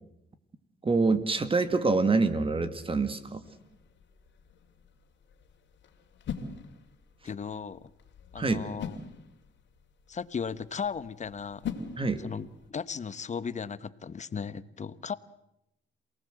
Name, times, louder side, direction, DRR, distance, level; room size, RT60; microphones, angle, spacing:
voice 1, 0.8-3.4 8.4-8.6 12.0-12.2, right 3 dB, 25° right, 10 dB, 2.0 m, -26 dB
sound 1, 3.4-12.7, left 6 dB, 65° left, 3.0 m, -44 dB
voice 2, 7.2-7.9 8.3-9.0 10.1-11.7 12.2-15.1, left 6 dB, 35° left, 15 dB, 1.0 m, -36 dB
28.0 x 18.5 x 7.8 m, 0.85 s
cardioid pair, 90°, 20 cm